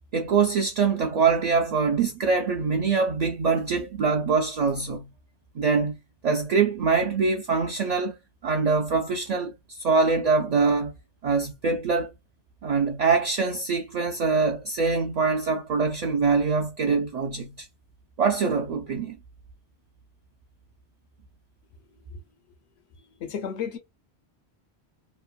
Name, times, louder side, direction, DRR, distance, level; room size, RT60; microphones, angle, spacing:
voice 1, 0.1-5.1 5.6-6.0 6.2-8.2 8.4-10.9 11.2-12.1 12.6-17.7 18.2-19.2, right 4 dB, 60° right, 0.4 m, -24 dB
voice 2, 23.2-23.8, left 7 dB, 85° left, 1.0 m, -31 dB
3.0 x 2.1 x 2.4 m
omnidirectional pair, 1.1 m